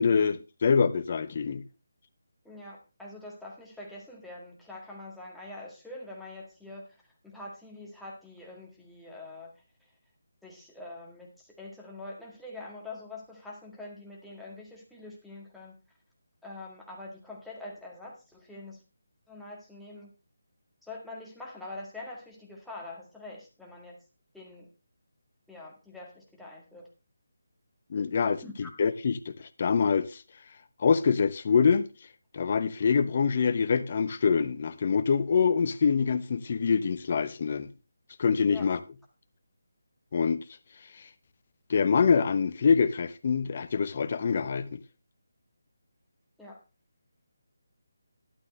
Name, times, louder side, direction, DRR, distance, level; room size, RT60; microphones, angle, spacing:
voice 1, 0.0-1.6 27.9-28.4 28.8-30.2 30.8-31.9 32.3-37.7 38.2-38.8 40.1-40.4 41.0-41.1 41.7-44.8, left 6 dB, 40° left, 0.9 m, -25 dB
voice 2, 2.4-9.6 10.4-15.7 16.4-18.8 19.3-20.1 20.8-24.0 24.3-24.7 25.5-26.9 28.4-28.7 38.5-38.7 46.4-46.6, left 2 dB, ahead, 1.9 m, -45 dB
12.0 x 11.5 x 3.2 m
figure-of-eight pair, 160°, 0 cm